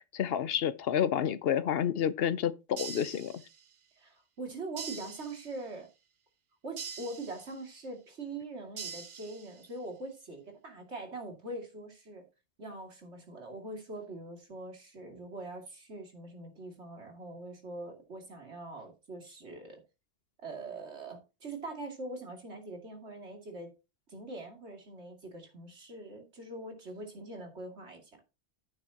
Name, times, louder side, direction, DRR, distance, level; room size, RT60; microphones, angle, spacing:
voice 1, 0.0-3.4, left 9 dB, 65° left, 0.8 m, -30 dB
sound 1, 2.8-3.8 4.8-5.8 6.8-7.8 8.8-9.8, right 6 dB, 55° right, 0.9 m, -44 dB
voice 2, 4.0-5.9 6.6-12.2 12.6-19.8 20.4-23.7 24.1-28.2, right 2 dB, 80° right, 2.8 m, -43 dB
10.5 x 8.8 x 2.9 m
omnidirectional pair, 1.1 m